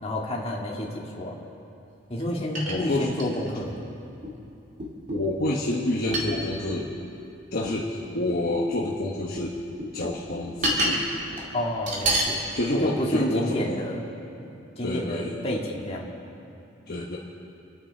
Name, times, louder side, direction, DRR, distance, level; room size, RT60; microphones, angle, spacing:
voice 1, 0.0-1.4 2.1-3.9 11.5-12.4 12.8-14.0 14.4-14.5 14.8-16.1, left 1 dB, 30° left, -2 dB, 2.0 m, -29 dB
sound 1, 2.2-2.3 2.5-3.7 4.2-4.3 4.8-5.3 6.1-6.8 7.6-7.8 8.9-9.5 9.8-11.0 11.3-11.5 11.9-12.3 13.0-13.1, right 1 dB, 40° right, 2.5 m, -28 dB
voice 2, 2.7-3.1 5.1-6.9 7.5-9.6 9.9-11.0 12.5-13.8 14.8-15.4 16.9-17.2, left 1 dB, 50° left, -4 dB, 1.2 m, -28 dB
27.5 x 9.5 x 4.6 m, 2.8 s
head